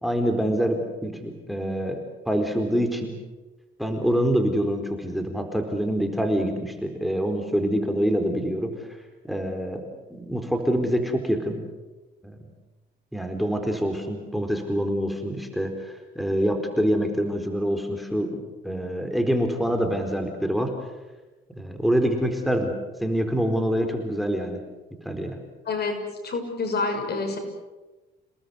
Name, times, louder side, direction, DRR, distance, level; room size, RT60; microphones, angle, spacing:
voice 1, 0.0-2.0 2.3-3.1 3.8-8.7 9.2-9.8 10.1-11.6 12.2-12.4 13.1-18.4 18.6-20.7 21.5-22.7 23.0-24.6 25.0-25.4, equal, ahead, 5 dB, 4.4 m, -25 dB
voice 2, 25.6-27.4, left 3 dB, 55° left, 5 dB, 6.5 m, -28 dB
29.5 x 19.0 x 8.1 m, 1.2 s
cardioid pair, 90°, 20 cm